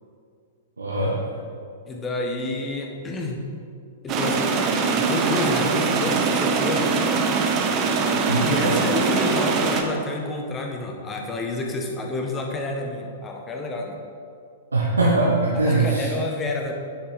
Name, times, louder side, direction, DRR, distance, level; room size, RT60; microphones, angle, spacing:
voice 1, 0.8-1.2 8.3-8.7 14.7-16.1, right 2 dB, 75° right, -5 dB, 1.4 m, -21 dB
voice 2, 1.9-3.4 4.0-4.5 5.0-6.9 8.4-14.0 15.5-16.7, left 2 dB, 20° left, 1 dB, 1.4 m, -29 dB
sound 1, 4.1-9.8, right 4 dB, 30° right, 1.0 m, -22 dB
9.8 x 8.5 x 4.2 m, 2.4 s
figure-of-eight pair, 105°, 0 cm